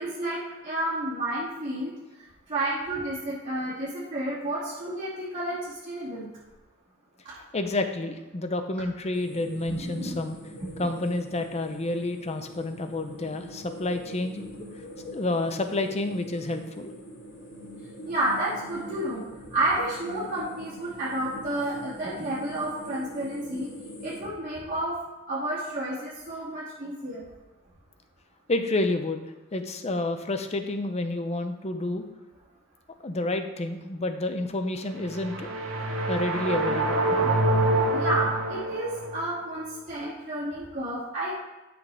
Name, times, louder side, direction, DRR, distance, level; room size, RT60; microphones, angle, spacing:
voice 1, 0.0-1.9 2.5-6.3 7.2-7.4 9.7-10.2 10.7-10.9 18.1-19.2 19.5-23.7 24.0-25.0 25.3-27.2 37.2-37.3 37.9-41.4, right 1 dB, 35° right, -9 dB, 2.4 m, -31 dB
voice 2, 7.5-10.4 10.8-14.6 15.1-16.9 28.5-32.0 33.0-35.5 36.1-37.0, left 2 dB, 30° left, 7 dB, 0.7 m, -29 dB
sound 1, 9.1-24.2, equal, 70° left, 2.6 m, -43 dB
sound 2, 35.0-39.3, right 2 dB, 70° right, 1.2 m, -26 dB
12.0 x 6.1 x 3.4 m, 1.1 s
head